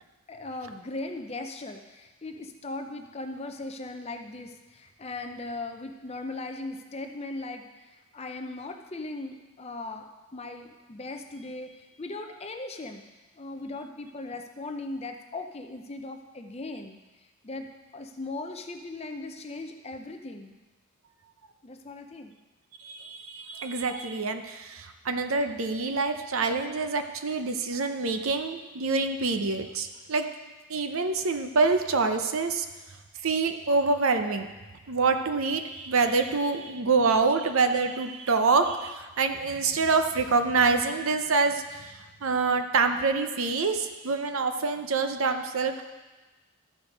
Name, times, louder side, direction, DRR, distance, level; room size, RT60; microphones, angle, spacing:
voice 1, 0.3-10.1 10.3-13.0 13.4-17.0 17.4-20.6 21.6-22.3, left 2 dB, 25° left, 5 dB, 0.6 m, -38 dB
voice 2, 22.8-30.3 30.7-32.7 33.2-34.5 34.9-45.8, right 4 dB, 65° right, 7 dB, 0.7 m, -26 dB
13.0 x 5.0 x 5.2 m, 1.2 s
head